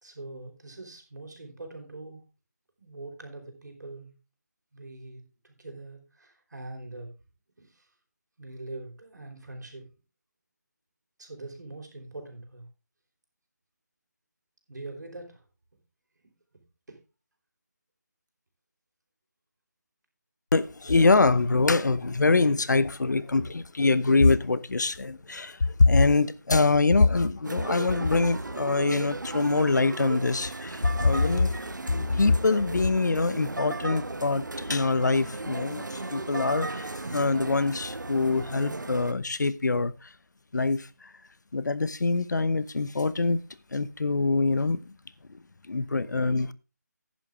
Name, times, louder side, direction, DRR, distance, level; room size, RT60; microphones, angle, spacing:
voice 1, 0.0-2.2 2.8-4.1 4.7-7.1 7.6-7.9 8.4-9.9 11.2-12.7 14.7-15.4 16.9-17.0, right 2 dB, 70° right, 4.8 m, -43 dB
voice 2, 20.5-31.5 31.9-40.1 40.5-41.1 41.5-43.4 43.7-44.9 45.3-45.4 45.7-46.5, left 3 dB, 75° left, 0.9 m, -24 dB
sound 1, 27.4-39.1, right 2 dB, 90° right, 1.2 m, -35 dB
10.5 x 10.0 x 3.6 m
figure-of-eight pair, 165°, 10 cm